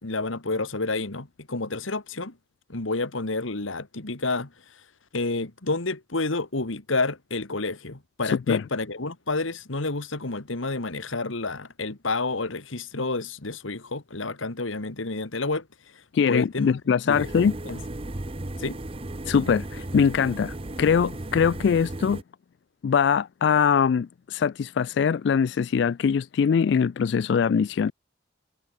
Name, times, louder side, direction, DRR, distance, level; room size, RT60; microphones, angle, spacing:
voice 1, 0.0-2.4 2.7-4.8 5.1-16.8 17.0-17.8 18.6-18.8, left 3 dB, 85° left, 2.0 m, -30 dB
voice 2, 8.3-8.6 16.1-17.5 19.3-22.2 22.8-27.9, left 6 dB, 60° left, 0.3 m, -22 dB
sound 1, 17.1-22.2, right 1 dB, 30° right, 0.8 m, -35 dB
head